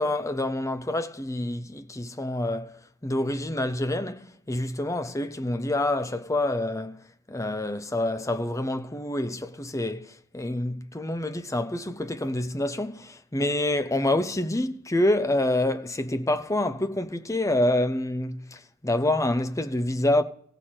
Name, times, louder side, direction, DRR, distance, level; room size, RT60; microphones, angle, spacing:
voice 1, 0.0-7.0 7.3-20.2, left 1 dB, 15° left, 0.8 m, -27 dB
16.0 x 6.5 x 7.7 m
head